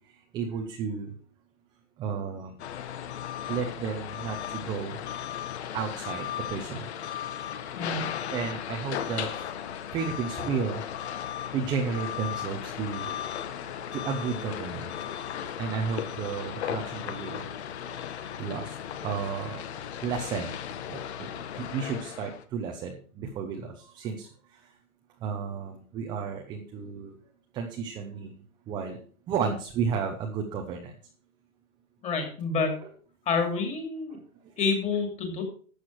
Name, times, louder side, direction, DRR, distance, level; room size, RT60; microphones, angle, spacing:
voice 1, 0.1-1.1 2.0-2.6 3.5-5.0 5.7-6.9 7.9-8.0 8.3-9.5 9.9-10.8 11.5-13.2 13.9-17.5 17.9-18.1 18.4-18.8 19.0-19.6 20.0-20.6 20.9-24.7 25.2-27.2 27.5-28.4 28.7-29.0 29.3-30.9 32.8-32.9 34.1-34.2 34.4-34.5, right 6 dB, 10° right, 3 dB, 0.7 m, -33 dB
sound 1, 2.6-22.4, left 9 dB, 50° left, 1.4 m, -36 dB
voice 2, 7.8-8.1 32.0-32.7 33.3-34.2 34.6-35.4, left 4 dB, 15° left, 5 dB, 2.6 m, -28 dB
13.0 x 8.1 x 4.6 m, 0.42 s
hypercardioid pair, 160°, 42 cm